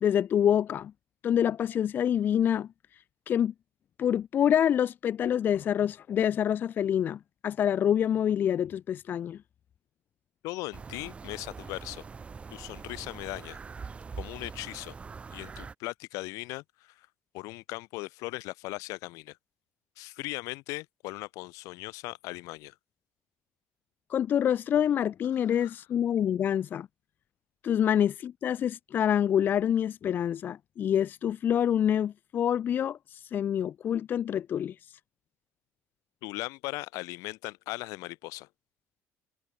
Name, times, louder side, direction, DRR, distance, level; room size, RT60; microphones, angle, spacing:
voice 1, 0.0-0.9 1.2-3.5 4.0-9.4 24.1-26.9 27.6-34.8, left 9 dB, 35° left, 0.6 m, -27 dB
voice 2, 10.4-12.1 12.5-13.6 14.2-14.9 15.3-17.1 17.3-19.4 20.0-22.8 25.4-25.7 36.2-38.5, left 22 dB, 75° left, 3.8 m, -38 dB
sound 1, 10.7-15.7, right 5 dB, 20° right, 7.4 m, -43 dB
cardioid pair, 150°, 6 cm